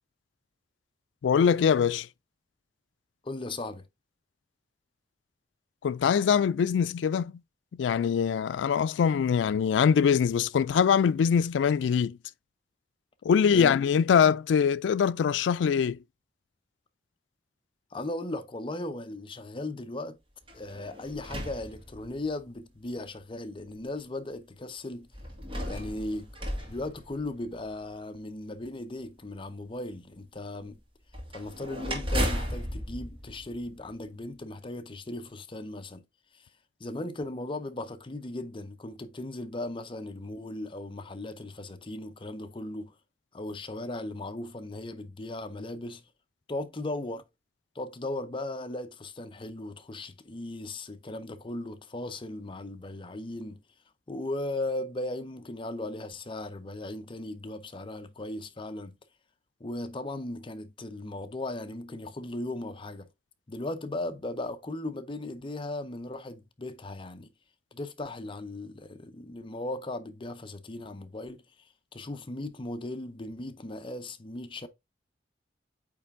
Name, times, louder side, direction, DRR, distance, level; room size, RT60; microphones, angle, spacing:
voice 1, 1.2-2.1 5.8-7.3 7.7-12.2 13.2-16.0, left 7 dB, 80° left, 0.3 m, -23 dB
voice 2, 3.2-3.9 13.5-13.8 17.9-20.2 20.5-25.1 25.6-26.3 26.7-30.8 31.3-36.0 36.3-36.5 36.8-43.0 43.3-46.1 46.5-47.2 47.7-53.6 54.1-59.0 59.6-63.1 63.5-67.3 67.7-71.5 71.9-74.7, left 2 dB, 30° left, 0.6 m, -37 dB
sound 1, 20.4-22.4 23.2-23.3 25.1-27.7 31.1-34.2, equal, 30° right, 2.0 m, -35 dB
8.6 x 3.3 x 3.6 m
head